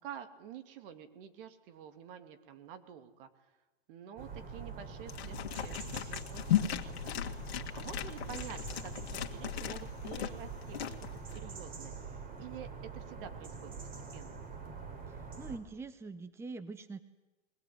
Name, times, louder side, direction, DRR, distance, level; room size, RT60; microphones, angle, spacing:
voice 1, 0.0-3.3 3.9-7.2 7.4-11.9 12.4-12.7 12.9-13.7 14.1-14.4, right 9 dB, 60° right, 9 dB, 2.7 m, -49 dB
sound 1, 4.2-15.6, right 5 dB, 25° right, 4.2 m, -45 dB
sound 2, 5.1-11.4, left 11 dB, 75° left, 2.1 m, -37 dB
voice 2, 15.1-17.0, right 3 dB, 10° right, 12 dB, 0.9 m, -44 dB
22.5 x 19.5 x 9.6 m, 1.1 s
hypercardioid pair, 120°, 32 cm